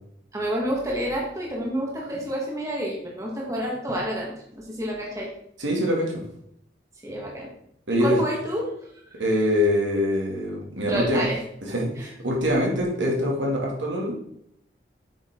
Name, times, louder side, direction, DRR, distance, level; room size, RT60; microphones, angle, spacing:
voice 1, 0.3-5.3 7.0-7.5 7.9-8.7 9.1-9.2 10.9-11.4 12.0-12.1, equal, 15° right, -2 dB, 1.7 m, -29 dB
voice 2, 5.6-6.1 7.9-8.2 9.2-11.2 11.7-14.1, left 1 dB, 85° right, -1 dB, 2.7 m, -24 dB
8.0 x 6.6 x 3.8 m, 0.72 s
head